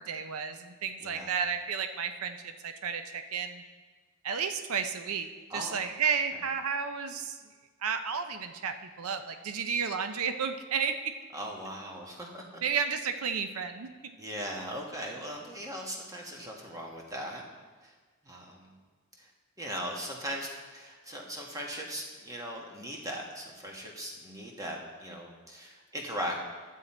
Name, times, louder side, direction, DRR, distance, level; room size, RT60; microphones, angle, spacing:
voice 1, 0.0-3.6 4.2-7.4 7.8-10.9 12.6-13.9, right 6 dB, 80° right, 8 dB, 0.6 m, -32 dB
voice 2, 1.0-1.3 5.5-5.8 11.3-12.4 14.2-17.4 17.8-17.9 18.2-18.7 19.2-19.3 19.6-26.4, equal, 15° right, -1 dB, 1.4 m, -39 dB
11.5 x 7.5 x 4.3 m, 1.4 s
head